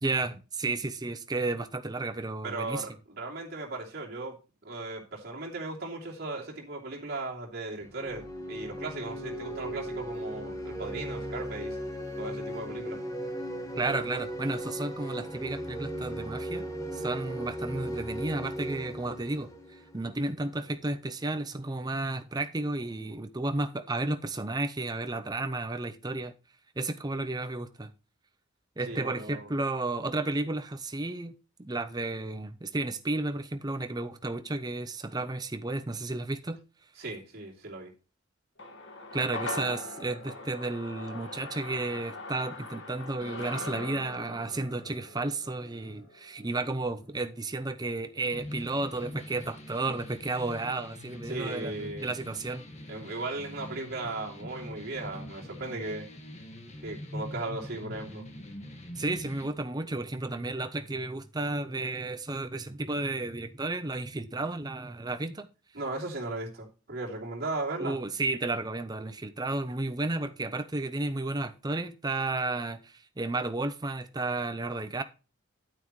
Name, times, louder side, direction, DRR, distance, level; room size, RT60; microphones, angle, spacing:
voice 1, 0.0-2.8 13.8-16.7 16.9-19.5 19.9-26.3 26.8-27.9 28.8-31.3 31.6-36.6 39.1-52.6 59.0-65.5 67.8-75.0, right 2 dB, 20° right, 0.6 m, -32 dB
voice 2, 2.4-4.3 4.6-11.8 12.2-13.0 28.9-29.5 37.0-37.9 51.3-52.1 52.9-56.1 56.8-58.3 65.7-68.0, right 2 dB, 50° right, 2.8 m, -37 dB
sound 1, 7.8-20.5, right 1 dB, 15° left, 1.4 m, -37 dB
sound 2, 38.6-47.1 47.4-47.5, left 2 dB, 60° left, 1.8 m, -41 dB
sound 3, 48.3-59.5, left 1 dB, 35° left, 1.7 m, -43 dB
9.5 x 9.0 x 3.1 m
head